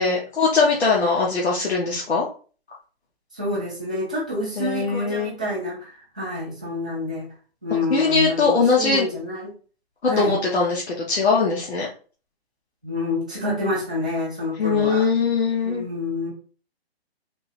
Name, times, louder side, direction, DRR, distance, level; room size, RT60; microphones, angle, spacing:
voice 1, 0.0-2.3 4.6-5.3 7.9-9.1 10.2-11.9 14.6-15.8, left 4 dB, 80° left, -3 dB, 1.2 m, -21 dB
voice 2, 3.3-7.3 7.6-9.5 10.1-10.4 12.8-15.1 15.6-16.3, left 1 dB, 10° right, -8 dB, 0.3 m, -28 dB
3.6 x 2.6 x 3.1 m, 0.39 s
hypercardioid pair, 145°, 32 cm